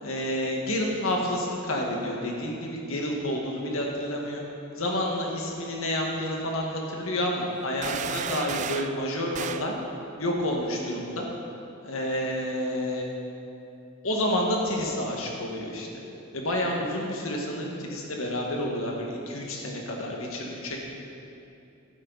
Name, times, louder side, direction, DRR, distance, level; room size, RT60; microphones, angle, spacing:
voice 1, 0.0-4.4 4.8-9.8 10.2-11.3 11.8-13.1 14.0-15.9 16.3-20.8, left 1 dB, 85° left, -1 dB, 1.8 m, -29 dB
sound 1, 7.8-9.0 9.3-9.7, right 8 dB, 35° right, 0.3 m, -33 dB
13.5 x 12.0 x 4.1 m, 2.7 s
head